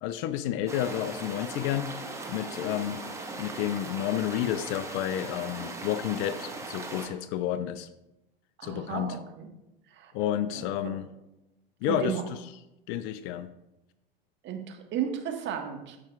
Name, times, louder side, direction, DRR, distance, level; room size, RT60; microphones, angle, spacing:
voice 1, 0.0-1.9 2.3-3.0 3.4-7.9 8.6-9.2 10.1-11.1 11.8-12.4 12.9-13.5, left 11 dB, 45° left, 14 dB, 0.5 m, -30 dB
sound 1, 0.7-7.1, right 3 dB, 10° right, 1.3 m, -39 dB
voice 2, 8.6-9.5 9.9-10.1 10.5-10.9 11.9-12.2 14.4-16.0, right 8 dB, 40° right, 3 dB, 1.5 m, -34 dB
14.5 x 5.8 x 2.4 m, 0.93 s
hypercardioid pair, 90°, 29 cm